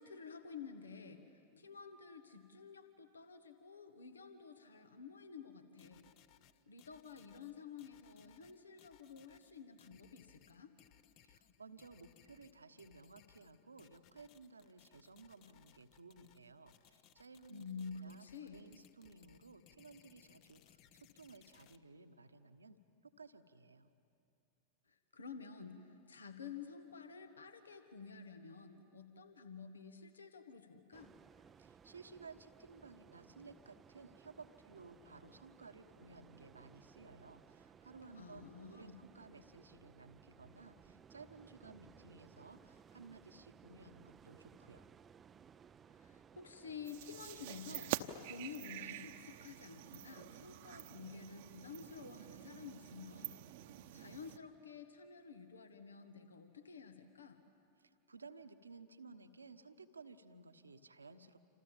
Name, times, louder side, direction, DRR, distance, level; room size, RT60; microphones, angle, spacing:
voice 1, 0.0-6.1 6.7-10.7 17.5-18.6 24.9-31.1 38.1-39.0 45.9-53.4 53.9-57.4, left 5 dB, 75° left, 9 dB, 1.5 m, -51 dB
sound 1, 5.8-21.8, left 10 dB, 40° left, 1.0 m, -67 dB
voice 2, 11.2-18.2 18.5-22.8 23.2-23.9 31.6-44.9 57.8-61.4, right 3 dB, 75° right, 9 dB, 1.2 m, -57 dB
sound 2, 30.9-48.1, right 7 dB, 20° right, 0.5 m, -61 dB
sound 3, 46.8-54.4, right 13 dB, 50° right, 1.0 m, -47 dB
28.0 x 27.5 x 7.4 m, 2.6 s
figure-of-eight pair, 90°, 0 cm